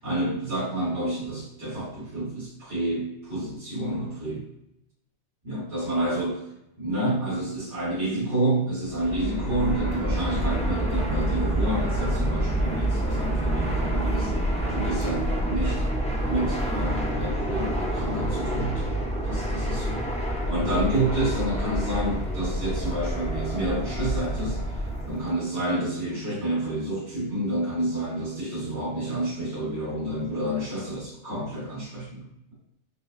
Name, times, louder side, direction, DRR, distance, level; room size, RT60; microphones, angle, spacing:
voice 1, 0.0-4.4 5.4-6.4 6.8-14.3 14.7-15.8 16.3-18.9 19.2-20.0 20.5-32.3, right 1 dB, 85° right, -9 dB, 1.8 m, -29 dB
Fixed-wing aircraft airplane, 8.9-25.3, right 1 dB, 10° left, 0.6 m, -27 dB
5.6 x 2.2 x 2.5 m, 0.83 s
omnidirectional pair, 1.2 m